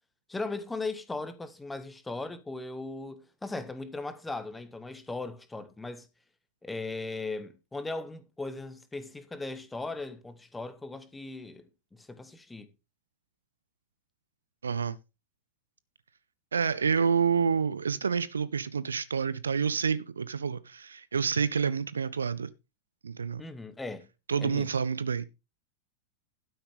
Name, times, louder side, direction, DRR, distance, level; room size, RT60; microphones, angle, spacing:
voice 1, 0.3-6.1 6.6-12.7 23.4-24.1 24.4-24.7, left 3 dB, 10° left, 1.5 m, -38 dB
voice 2, 14.6-15.0 16.5-22.5 23.0-23.4 24.3-25.2, right 6 dB, 70° right, 0.6 m, -28 dB
12.0 x 9.8 x 3.5 m
figure-of-eight pair, 90°, 0 cm